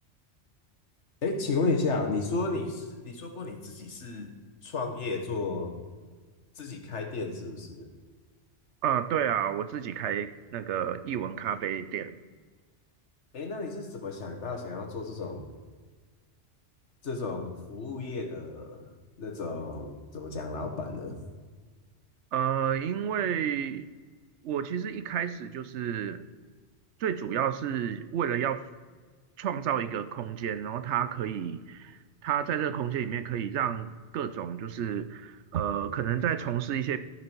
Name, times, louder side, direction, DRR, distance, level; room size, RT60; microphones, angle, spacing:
voice 1, 1.2-4.3 4.6-5.7 6.6-7.9 13.3-15.4 17.0-18.9 19.2-21.2, left 3 dB, 80° left, 3 dB, 1.6 m, -33 dB
voice 2, 8.8-12.1 22.3-23.8 24.4-26.2 27.0-28.6 29.4-33.9 34.1-37.0, right 9 dB, 75° right, 11 dB, 0.9 m, -30 dB
14.0 x 6.1 x 4.5 m, 1.5 s
omnidirectional pair, 1.2 m